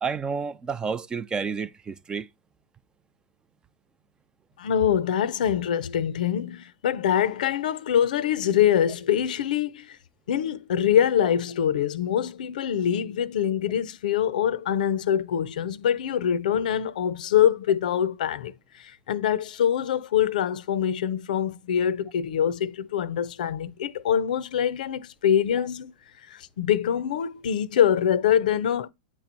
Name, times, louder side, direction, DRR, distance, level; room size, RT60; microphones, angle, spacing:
voice 1, 0.0-2.3, right 5 dB, 20° right, 0.4 m, -30 dB
voice 2, 4.6-10.0 10.3-25.9 26.3-28.9, left 9 dB, 70° left, 0.5 m, -24 dB
8.5 x 3.0 x 4.0 m
hypercardioid pair, 110°, 5 cm